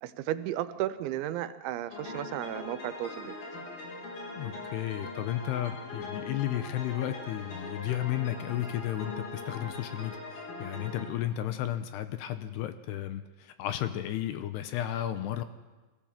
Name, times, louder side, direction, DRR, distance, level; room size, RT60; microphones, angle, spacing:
voice 1, 0.0-3.4, right 13 dB, 85° right, 12 dB, 3.2 m, -34 dB
sound 1, 1.9-11.1, left 3 dB, 55° left, 5.7 m, -41 dB
voice 2, 4.4-15.4, left 12 dB, 75° left, 10 dB, 2.7 m, -33 dB
22.5 x 16.0 x 7.4 m, 1.3 s
omnidirectional pair, 5.2 m